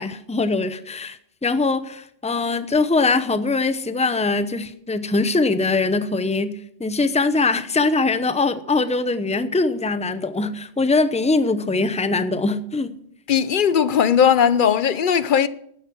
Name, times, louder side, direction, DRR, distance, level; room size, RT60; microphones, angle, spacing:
voice 1, 0.0-6.5 6.8-12.9, left 3 dB, 10° left, 0.5 m, -22 dB
voice 2, 13.3-15.5, left 8 dB, 55° left, 0.7 m, -18 dB
13.0 x 9.9 x 6.0 m
omnidirectional pair, 1.2 m